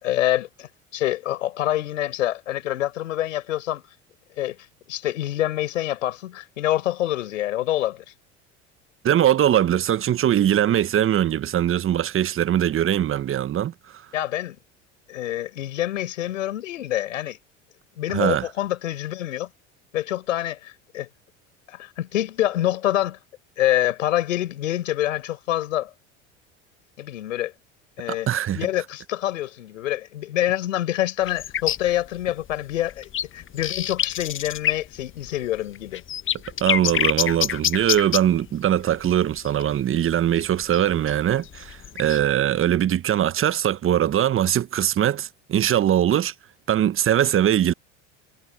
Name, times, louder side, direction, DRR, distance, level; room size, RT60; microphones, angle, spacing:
voice 1, 0.0-3.8 4.4-4.6 4.9-8.0 14.1-14.6 15.1-17.4 18.0-19.5 19.9-21.1 21.7-23.2 23.6-25.9 27.0-27.5 28.0-28.3 28.5-36.0, left 13 dB, 80° left, 4.6 m, -26 dB
voice 2, 9.0-13.7 18.1-18.5 28.1-28.6 36.6-46.3 46.7-47.7, right 11 dB, 35° right, 1.2 m, -21 dB
sound 1, 31.3-42.3, left 10 dB, 30° left, 1.1 m, -27 dB
hypercardioid pair, 75°, 38 cm